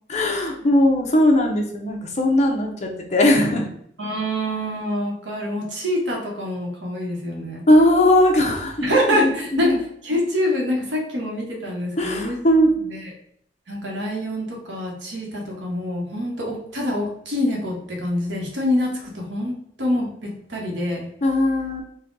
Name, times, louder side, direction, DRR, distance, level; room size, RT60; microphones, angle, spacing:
voice 1, 0.1-3.6 7.7-8.9 9.2-9.8 12.0-12.7 21.2-21.8, left 1 dB, 40° left, 1 dB, 0.7 m, -19 dB
voice 2, 4.0-7.6 8.8-13.1 13.7-21.1, left 1 dB, 85° right, -1 dB, 1.2 m, -26 dB
4.1 x 2.3 x 3.8 m, 0.69 s
head